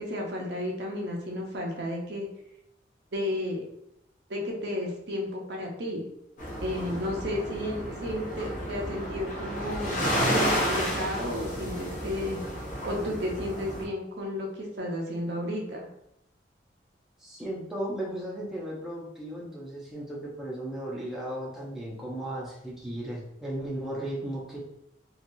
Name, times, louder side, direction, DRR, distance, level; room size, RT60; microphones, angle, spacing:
voice 1, 0.0-2.3 3.1-3.6 4.3-6.0 6.6-10.0 10.3-12.4 12.8-15.9, left 1 dB, 65° right, -1 dB, 0.6 m, -32 dB
sound 1, 6.4-13.8, equal, 40° left, 0.8 m, -31 dB
voice 2, 17.2-24.6, right 1 dB, ahead, -6 dB, 0.6 m, -35 dB
2.9 x 2.4 x 2.6 m, 0.79 s
head